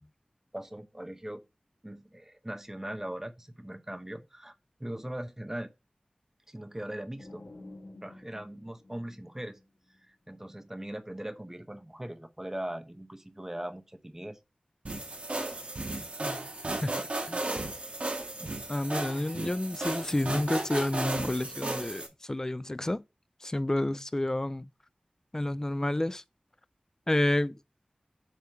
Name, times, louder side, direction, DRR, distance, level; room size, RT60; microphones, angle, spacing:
voice 1, 0.5-1.4 1.8-4.5 4.8-5.7 6.5-7.4 8.0-9.6 10.1-14.4, right 1 dB, 15° right, 0.9 m, -40 dB
sound 1, 7.2-10.0, left 2 dB, 65° left, 1.6 m, -50 dB
sound 2, 14.9-22.1, right 2 dB, 60° right, 1.8 m, -35 dB
voice 2, 16.8-17.4 18.7-23.0 23.4-24.7 25.3-26.2 27.1-27.6, left 1 dB, 20° left, 0.3 m, -30 dB
7.5 x 3.7 x 4.5 m
wide cardioid pair, 65°, 3 cm